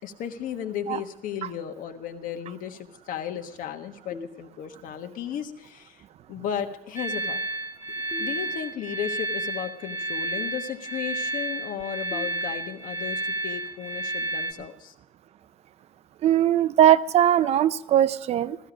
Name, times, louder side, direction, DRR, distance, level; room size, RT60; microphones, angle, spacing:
voice 1, 0.0-6.0 6.3-7.4 8.2-14.9, left 9 dB, 70° left, 7 dB, 1.3 m, -35 dB
sound 1, 4.1-5.1 8.1-9.1 12.1-13.1, left 2 dB, 15° left, 0.9 m, -45 dB
sound 2, 7.0-14.5, right 2 dB, 20° right, 0.9 m, -31 dB
voice 2, 16.2-18.6, right 11 dB, 45° right, 16 dB, 0.5 m, -20 dB
15.0 x 14.5 x 5.0 m, 0.83 s
cardioid pair, 165°, 15 cm